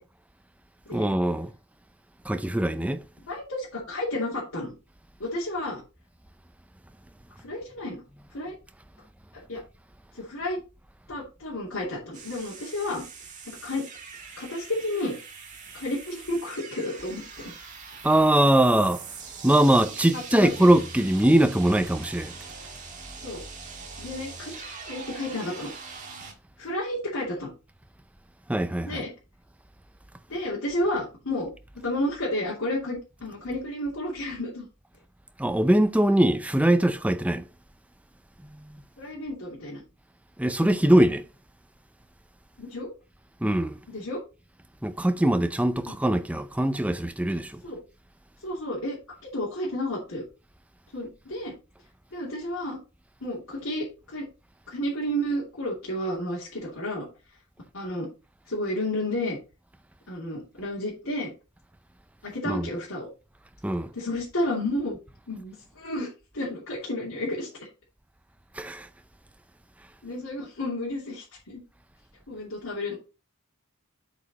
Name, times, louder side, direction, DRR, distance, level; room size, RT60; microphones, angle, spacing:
voice 1, 0.9-1.5 2.2-3.0 18.0-19.0 19.4-22.3 28.5-29.0 35.4-37.4 38.5-38.8 40.4-41.2 43.4-43.8 44.8-47.6 62.5-62.7 63.6-63.9 68.5-68.9, right 1 dB, 5° right, 0.5 m, -22 dB
voice 2, 3.3-4.7 5.2-5.8 7.4-8.0 8.3-8.6 9.5-9.6 10.1-10.6 11.1-13.0 13.5-13.9 14.4-15.1 15.7-17.5 20.1-20.7 23.2-23.4 24.0-25.7 26.6-27.5 28.8-29.1 30.3-31.5 31.8-34.7 39.0-39.8 42.6-42.9 43.9-44.2 47.6-47.8 48.4-50.2 50.9-51.6 52.1-52.8 53.2-54.2 54.7-57.1 57.7-58.1 58.5-59.4 60.1-61.3 62.2-63.1 63.9-65.0 65.3-66.1 66.3-67.5 70.0-71.6 72.3-73.0, left 1 dB, 80° left, 2.8 m, -31 dB
sound 1, 12.1-26.3, right 4 dB, 35° right, 1.7 m, -42 dB
8.2 x 5.1 x 4.2 m
head